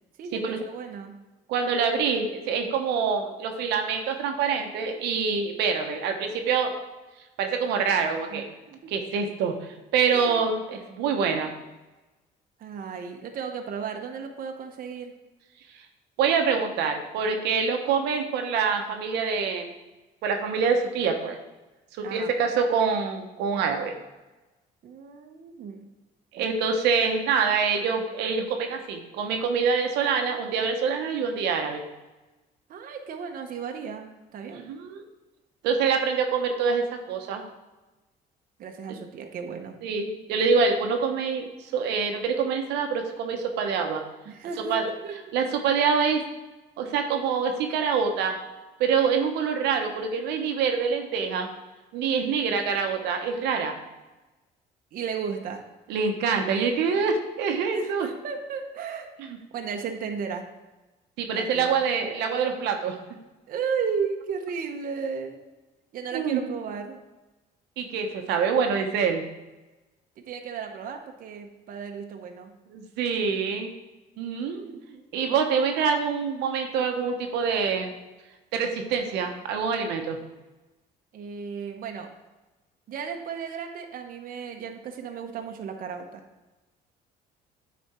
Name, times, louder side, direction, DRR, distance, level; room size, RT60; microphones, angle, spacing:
voice 1, 0.2-1.1 8.3-8.4 8.7-8.9 10.1-10.4 12.6-15.1 22.0-22.4 24.8-25.8 32.7-34.7 38.6-39.8 44.3-45.2 54.9-55.6 57.7-59.1 59.5-60.4 61.3-61.8 63.5-65.4 65.9-67.0 70.2-72.5 74.6-75.3 81.1-82.1 82.9-86.2, right 6 dB, 55° right, 4 dB, 0.9 m, -34 dB
voice 2, 1.5-6.7 7.4-8.4 8.9-11.5 16.2-19.7 20.2-21.4 22.1-23.9 26.3-31.8 34.5-35.0 35.6-37.4 39.8-41.5 41.7-44.0 44.7-44.9 45.3-46.2 46.8-48.4 48.8-51.5 51.9-53.7 55.9-58.1 59.2-59.3 61.2-63.0 66.1-66.4 67.8-69.2 72.7-73.7 74.2-74.7 75.1-77.9 78.5-80.2, right 5 dB, 85° right, 4 dB, 0.9 m, -25 dB
9.5 x 4.3 x 4.3 m, 1.1 s
cardioid pair, 110°, 17 cm